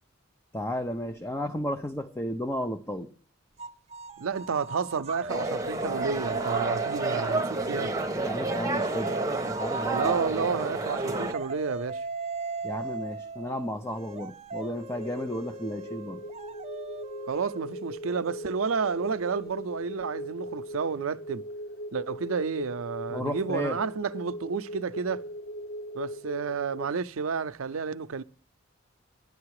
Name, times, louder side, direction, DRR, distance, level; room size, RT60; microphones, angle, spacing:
voice 1, 0.5-3.1 8.2-9.1 9.4-10.1 12.6-16.2 23.1-23.8, equal, 15° left, 0.6 m, -33 dB
sound 1, 3.6-7.5 8.5-19.8, right 4 dB, 30° right, 0.6 m, -38 dB
voice 2, 4.2-7.9 9.9-12.0 17.3-21.4 21.9-25.2 25.9-28.2, right 5 dB, 85° right, 0.6 m, -31 dB
sound 2, 5.3-11.3, right 2 dB, 15° right, 1.1 m, -30 dB
sound 3, 14.9-26.9, equal, 70° left, 0.6 m, -40 dB
12.0 x 10.5 x 4.8 m
head